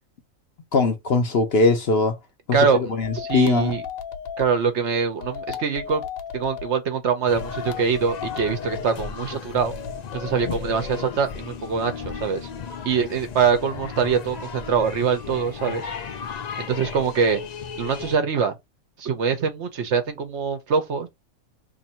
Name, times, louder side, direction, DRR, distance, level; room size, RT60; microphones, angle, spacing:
voice 1, 0.7-2.1 2.5-3.7, left 3 dB, 55° left, 0.8 m, -21 dB
voice 2, 2.5-3.8 4.4-6.0 6.3-9.7 10.1-12.5 12.8-15.9 16.6-17.4 17.8-18.5 19.0-21.1, right 6 dB, 60° right, 1.0 m, -24 dB
sound 1, 3.0-4.6 5.2-6.7 7.4-8.9 9.6-11.1, left 7 dB, 90° left, 1.1 m, -34 dB
sound 2, 7.3-18.2, left 6 dB, 70° left, 0.4 m, -35 dB
2.9 x 2.6 x 4.2 m
omnidirectional pair, 1.4 m